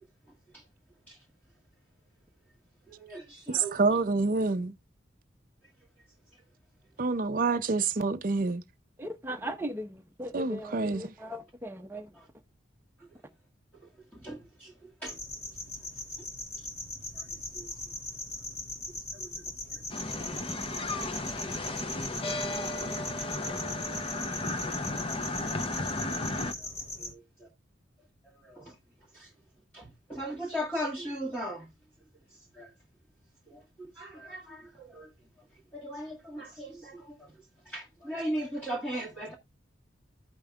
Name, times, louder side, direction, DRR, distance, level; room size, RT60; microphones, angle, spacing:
voice 1, 2.9-3.8 7.1-7.2 12.1-12.3 13.0-13.1 13.8-15.2 16.6-16.7 17.1-17.8 18.9-19.4 19.7-19.8 20.3-20.4 20.7-21.9 24.0-24.2 24.9-25.4 25.9-26.0 26.3-26.7 27.0-27.5 28.2-28.8 29.1-29.3 29.7-31.7 32.3-32.7 33.5-35.1 35.7-39.4, equal, 10° left, 1.5 m, -40 dB
voice 2, 3.5-4.7 7.0-8.6 10.3-11.1, right 3 dB, 45° right, 0.5 m, -27 dB
voice 3, 9.0-12.1, equal, 10° right, 0.8 m, -38 dB
sound 1, 15.0-27.1, left 2 dB, 60° left, 2.1 m, -40 dB
sound 2, 19.9-26.5, left 2 dB, 30° left, 0.6 m, -34 dB
15.0 x 5.2 x 2.3 m
head